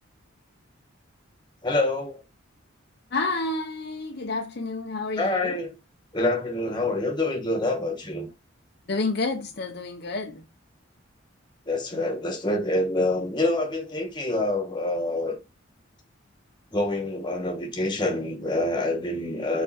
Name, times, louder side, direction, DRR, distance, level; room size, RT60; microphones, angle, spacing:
voice 1, 1.6-2.2 5.2-5.7 6.1-8.3 11.7-15.4 16.7-19.6, left 2 dB, 20° left, 1.4 m, -26 dB
voice 2, 3.1-5.6 8.9-10.4, left 3 dB, 50° left, 0.7 m, -29 dB
5.5 x 4.4 x 4.2 m
head